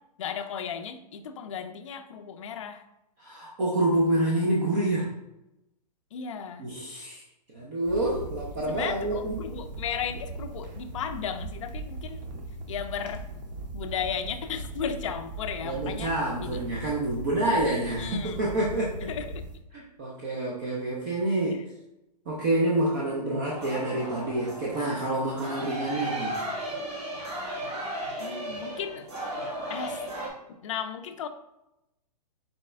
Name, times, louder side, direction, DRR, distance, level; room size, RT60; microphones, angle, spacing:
voice 1, 0.2-2.8 6.1-6.7 8.7-12.2 12.7-13.3 13.7-16.1 16.4-16.6 18.0-18.5 19.1-19.4 21.5-21.6 28.2-29.1 29.7-30.0 30.6-31.3, left 7 dB, 50° left, 8 dB, 0.4 m, -35 dB
voice 2, 3.2-5.1 6.6-7.2 7.5-9.4 15.6-19.1 19.7-21.6 22.3-26.4, right 1 dB, 25° right, -4 dB, 0.5 m, -27 dB
sound 1, 7.8-19.6, right 2 dB, 85° right, 0.9 m, -39 dB
sound 2, 23.5-30.3, right 1 dB, 40° right, 1.5 m, -35 dB
4.1 x 3.3 x 3.2 m, 0.90 s
hypercardioid pair, 175°, 21 cm